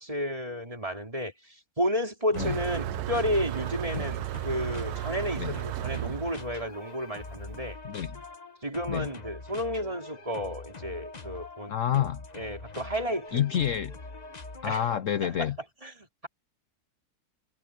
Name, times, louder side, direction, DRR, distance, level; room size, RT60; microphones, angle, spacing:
voice 1, 0.0-7.8 8.6-12.0 12.3-13.4 14.6-14.8 15.2-15.5 15.8-16.3, equal, 20° right, 4.2 m, -32 dB
sound 1, 2.3-15.1, left 3 dB, 30° left, 1.2 m, -44 dB
Motor vehicle (road), 2.3-7.5, right 15 dB, 85° right, 1.1 m, -34 dB
voice 2, 7.8-8.2 8.9-9.1 11.7-12.2 13.3-13.9 14.6-15.6, left 10 dB, 60° left, 1.0 m, -28 dB
omnidirectional pair, 1.6 m